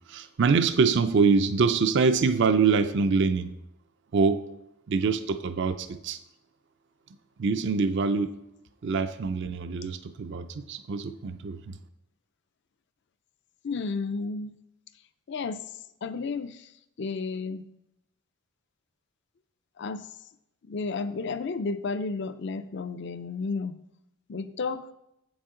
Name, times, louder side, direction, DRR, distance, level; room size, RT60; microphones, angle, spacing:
voice 1, 0.1-3.5 4.1-4.5 4.9-6.2 7.4-8.4 8.8-11.8, right 5 dB, 50° right, 11 dB, 0.4 m, -24 dB
voice 2, 13.6-14.5 15.3-15.6 16.0-16.7 17.0-17.6 19.8-20.1 20.7-23.8 24.3-24.9, left 4 dB, 50° left, 13 dB, 0.4 m, -32 dB
8.3 x 7.1 x 3.7 m, 0.83 s
head